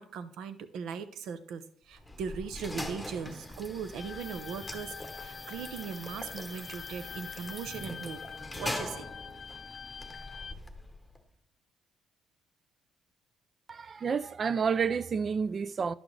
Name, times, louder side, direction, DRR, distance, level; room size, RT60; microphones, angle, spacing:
voice 1, 0.0-9.1, right 6 dB, 80° right, 0.7 m, -39 dB
sound 1, 1.9-11.2, left 1 dB, 5° left, 1.0 m, -42 dB
sound 2, 4.0-10.5, left 7 dB, 50° left, 0.3 m, -45 dB
voice 2, 13.7-15.9, right 6 dB, 45° right, 0.3 m, -30 dB
10.5 x 6.2 x 3.2 m
cardioid pair, 90°, 0 cm